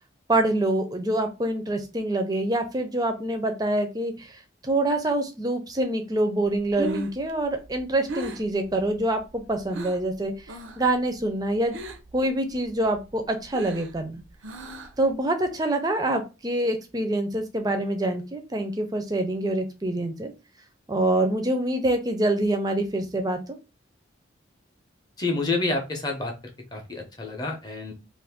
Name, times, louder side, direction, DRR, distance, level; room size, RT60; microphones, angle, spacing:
voice 1, 0.3-11.8 12.1-14.2 15.0-20.3 20.9-23.4, right 1 dB, 20° right, 6 dB, 0.4 m, -26 dB
Breathing, 6.5-10.1 10.4-10.9 11.2-12.2 12.5-15.1, right 2 dB, 80° right, 0.5 m, -37 dB
voice 2, 25.2-26.3 26.7-27.9, left 3 dB, 20° left, 2 dB, 0.6 m, -28 dB
2.5 x 2.5 x 3.5 m, 0.29 s
head